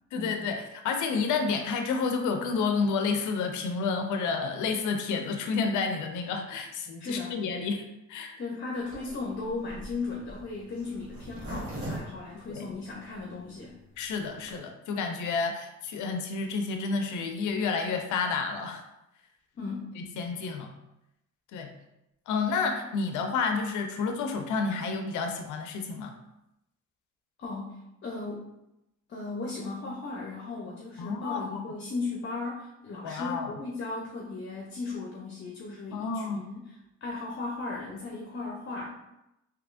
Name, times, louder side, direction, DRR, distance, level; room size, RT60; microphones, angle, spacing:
voice 1, 0.1-7.8 8.1-8.4 12.5-12.6 14.0-18.8 20.0-20.8 21.5-21.7 22.3-26.1 31.0-31.6 33.0-33.5 35.9-36.4, left 4 dB, 80° left, 5 dB, 0.5 m, -30 dB
voice 2, 7.0-7.4 8.4-13.8 19.6-19.9 27.4-28.5 29.1-36.7 37.0-38.9, left 3 dB, 40° left, -2 dB, 0.7 m, -36 dB
Zipper (clothing), 8.9-13.2 13.7-13.8 13.9-14.0 14.3-14.6, right 1 dB, 50° right, 1.2 m, -40 dB
3.4 x 2.9 x 2.5 m, 0.87 s
cardioid pair, 90°, 30 cm